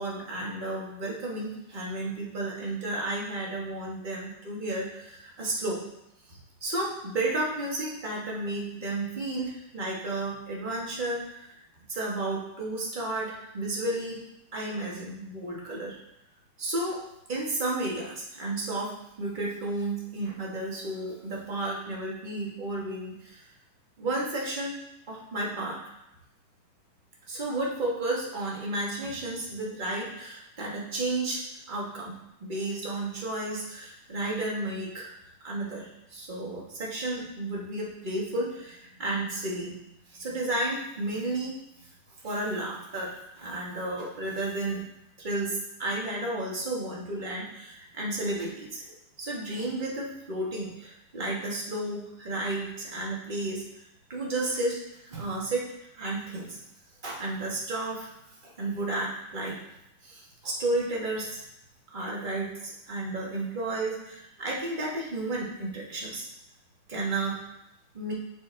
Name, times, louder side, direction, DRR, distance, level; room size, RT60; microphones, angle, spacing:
voice 1, 0.0-5.8 6.3-11.6 11.9-14.2 14.5-15.9 16.6-17.0 17.3-23.5 24.0-24.8 25.1-25.8 27.3-35.1 35.4-41.6 42.2-44.8 45.2-48.8 49.2-53.6 54.1-55.7 55.9-56.6 57.0-58.1 58.4-59.5 60.0-61.4 61.9-66.3 66.9-67.4 67.9-68.1, right 2 dB, 30° right, -4 dB, 1.3 m, -32 dB
9.1 x 4.2 x 3.3 m, 0.85 s
omnidirectional pair, 2.2 m